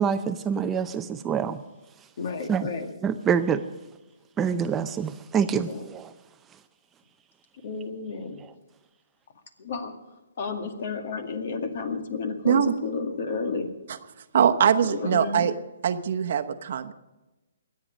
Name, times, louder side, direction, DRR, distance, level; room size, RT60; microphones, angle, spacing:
voice 1, 0.0-1.6 2.5-2.7 3.0-3.6 4.4-6.1 8.4-8.5, right 7 dB, 15° right, 9 dB, 0.5 m, -26 dB
voice 2, 2.2-2.9 5.5-5.8 7.6-8.4 9.6-9.9 10.4-13.7 14.6-15.5, left 4 dB, 55° left, 6 dB, 2.1 m, -31 dB
voice 3, 14.3-15.5 15.8-16.9, right 8 dB, 55° right, 8 dB, 0.9 m, -22 dB
23.0 x 8.6 x 5.2 m, 1.1 s
hypercardioid pair, 140°, 0 cm